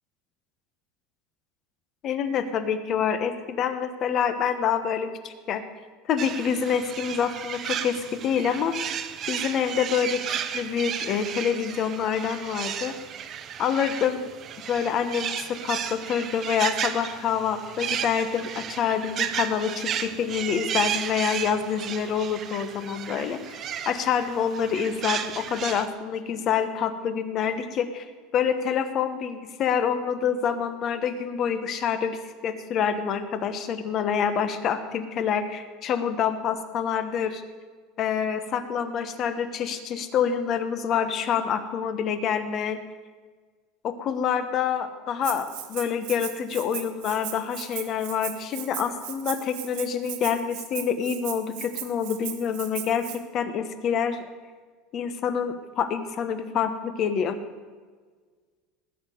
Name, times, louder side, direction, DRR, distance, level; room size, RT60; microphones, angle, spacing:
voice 1, 2.0-5.6 6.1-8.8 9.3-12.9 13.6-14.3 14.7-28.1 28.3-37.4 38.0-42.8 43.8-54.3 54.9-57.4, left 7 dB, 30° left, 10 dB, 1.1 m, -27 dB
sound 1, 6.2-25.9, right 9 dB, 30° right, 0.8 m, -33 dB
Rattle (instrument), 45.2-53.2, right 13 dB, 60° right, 1.6 m, -37 dB
18.5 x 6.7 x 9.3 m, 1.5 s
cardioid pair, 170°, 0 cm